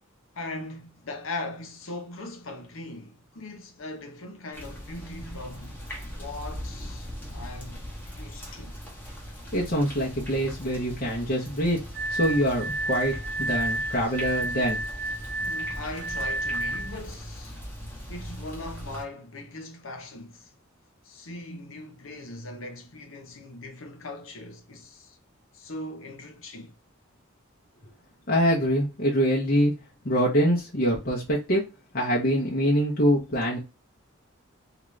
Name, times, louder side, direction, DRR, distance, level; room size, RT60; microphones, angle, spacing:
voice 1, 0.3-5.8 6.2-8.8 15.4-17.6 18.1-20.5 21.0-25.2 25.5-26.7 28.4-28.5, left 2 dB, 75° left, 0.8 m, -40 dB
sound 1, 4.5-19.0, equal, 10° left, 1.0 m, -40 dB
voice 2, 9.5-11.8 12.1-14.8 28.3-29.7 30.0-31.7 31.9-33.6, equal, 45° left, 0.9 m, -24 dB
Glass, 11.9-17.0, right 1 dB, 60° right, 0.7 m, -31 dB
2.9 x 2.5 x 3.1 m
head